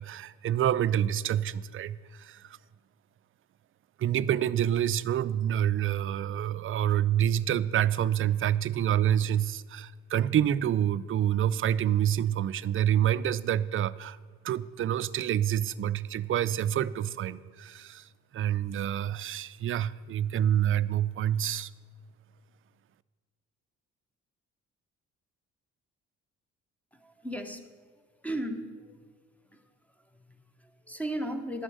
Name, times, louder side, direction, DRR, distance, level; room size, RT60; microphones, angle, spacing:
voice 1, 0.0-2.6 4.0-14.2 14.4-18.0 18.3-21.7, right 10 dB, 45° right, 16 dB, 0.4 m, -27 dB
voice 2, 26.9-27.7 28.2-29.1 29.4-31.6, right 1 dB, 5° left, 7 dB, 1.1 m, -37 dB
11.0 x 6.1 x 8.0 m, 1.5 s
cardioid pair, 90°, 30 cm